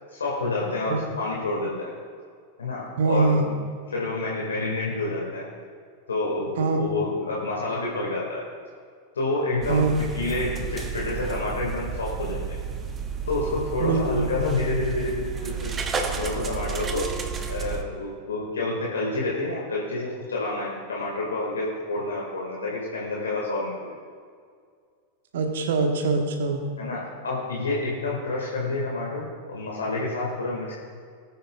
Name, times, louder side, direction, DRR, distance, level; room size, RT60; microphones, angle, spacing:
voice 1, 0.1-1.9 2.6-3.6 3.9-5.5 6.1-8.5 9.2-12.6 13.3-23.9 26.8-30.7, left 2 dB, 70° left, -4 dB, 2.0 m, -29 dB
voice 2, 3.0-3.5 6.6-6.8 9.7-10.0 13.8-14.3 25.3-26.6, right 4 dB, 60° right, 4 dB, 1.4 m, -23 dB
sound 1, 9.6-17.8, right 6 dB, 20° right, 0.9 m, -32 dB
19.5 x 9.3 x 2.4 m, 2.1 s
figure-of-eight pair, 90°, 0 cm